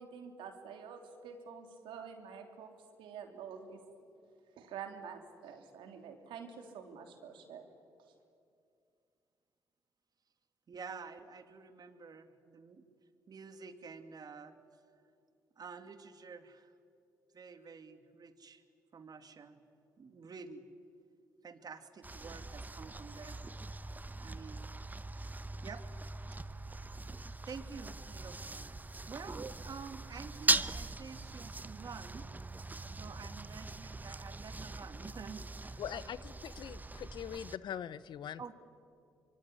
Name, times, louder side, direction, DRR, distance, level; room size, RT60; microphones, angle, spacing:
voice 1, 0.0-2.7 3.0-3.8 4.6-7.7, right 6 dB, 75° right, 5 dB, 3.3 m, -47 dB
voice 2, 10.7-12.8 13.3-14.5 15.6-16.7 17.3-18.6 18.9-19.6 20.0-20.7 21.4-23.4 24.2-24.7 25.6-25.8 27.4-32.3 32.9-36.1 38.4-38.5, right 5 dB, 50° right, 9 dB, 2.4 m, -49 dB
sound 1, 22.0-37.6, right 2 dB, 20° right, 1.0 m, -40 dB
voice 3, 35.8-38.4, left 9 dB, 65° left, 17 dB, 0.9 m, -42 dB
25.5 x 23.0 x 9.9 m, 2.5 s
hypercardioid pair, 50°, 8 cm